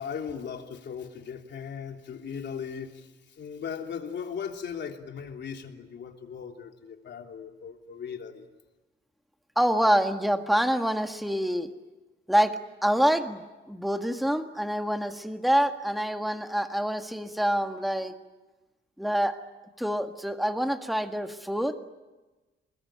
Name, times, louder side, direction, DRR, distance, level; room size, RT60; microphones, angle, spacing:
voice 1, 0.0-8.5, left 7 dB, 65° left, 3 dB, 3.3 m, -38 dB
voice 2, 9.6-11.7 12.3-18.1 19.0-19.4 19.8-21.7, equal, ahead, 6 dB, 1.8 m, -26 dB
29.5 x 21.0 x 9.0 m, 1.2 s
cardioid pair, 105°, 20 cm